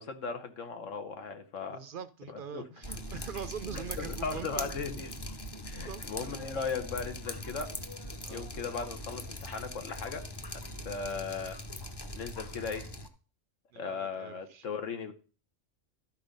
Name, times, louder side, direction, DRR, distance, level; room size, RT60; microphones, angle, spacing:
voice 1, 0.0-1.8 2.3-2.6 3.7-5.1 5.6-7.7 8.3-10.2 10.5-11.6 12.1-12.8 13.8-15.1, left 5 dB, 90° left, 8 dB, 1.5 m, -37 dB
voice 2, 1.7-4.7 5.7-6.0 8.2-8.5 13.7-14.7, right 8 dB, 60° right, 13 dB, 0.6 m, -43 dB
Drip, 2.8-13.1, left 1 dB, 25° left, 0.7 m, -41 dB
12.0 x 4.3 x 5.2 m, 0.37 s
omnidirectional pair, 1.3 m